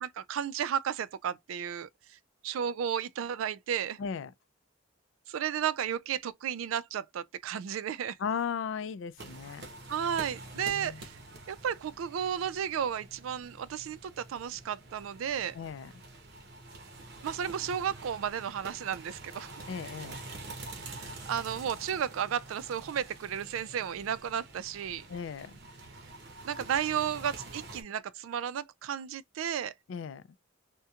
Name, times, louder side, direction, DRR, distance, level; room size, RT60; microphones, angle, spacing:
voice 1, 0.0-2.2 2.4-4.0 5.3-8.2 9.9-11.2 11.5-15.6 17.2-19.6 20.7-25.1 26.4-29.7, right 8 dB, 85° right, 0.3 m, -33 dB
voice 2, 4.0-4.3 8.2-9.7 10.6-11.0 15.5-15.9 19.7-20.2 25.1-25.5 29.9-30.2, left 6 dB, 70° left, 0.3 m, -36 dB
sound 1, 9.2-27.8, right 2 dB, 55° right, 0.7 m, -47 dB
2.8 x 2.1 x 2.3 m
head